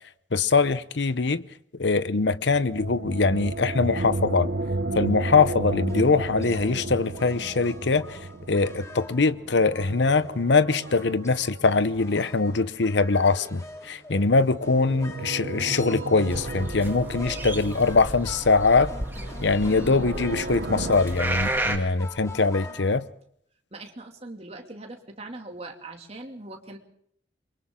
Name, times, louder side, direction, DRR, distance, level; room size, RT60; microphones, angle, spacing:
voice 1, 0.3-1.4 1.8-4.5 4.9-8.2 8.5-18.9 19.4-23.0, left 4 dB, 70° left, 0.8 m, -22 dB
sound 1, 2.3-13.0 14.2-21.0, right 2 dB, 60° right, 0.8 m, -34 dB
sound 2, 5.9-23.0, left 1 dB, 15° left, 2.2 m, -44 dB
sound 3, 16.3-21.8, right 1 dB, 10° right, 1.9 m, -32 dB
voice 2, 23.7-26.8, right 2 dB, 35° right, 2.6 m, -41 dB
28.5 x 23.5 x 3.8 m
head